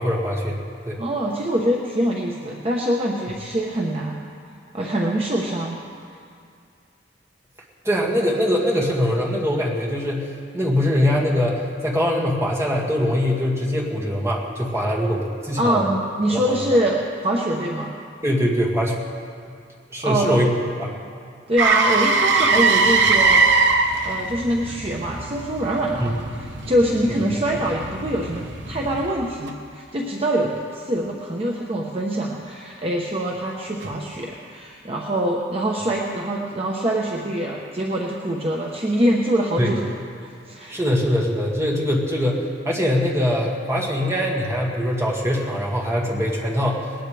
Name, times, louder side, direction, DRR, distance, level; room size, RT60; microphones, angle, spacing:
voice 1, 0.0-1.0 7.8-10.3 10.5-15.8 16.3-16.6 18.2-19.0 19.9-20.5 20.8-20.9 26.0-26.1 39.6-39.7 40.7-46.9, equal, 15° right, -3 dB, 2.3 m, -22 dB
voice 2, 1.0-4.2 4.7-5.8 15.6-17.9 20.0-20.4 21.5-23.5 24.0-39.8 40.2-40.8, right 1 dB, 35° right, -2 dB, 1.1 m, -24 dB
Motor vehicle (road), 21.6-29.5 33.8-34.0, right 4 dB, 75° right, 1.2 m, -22 dB
20.0 x 18.5 x 3.4 m, 2.3 s
head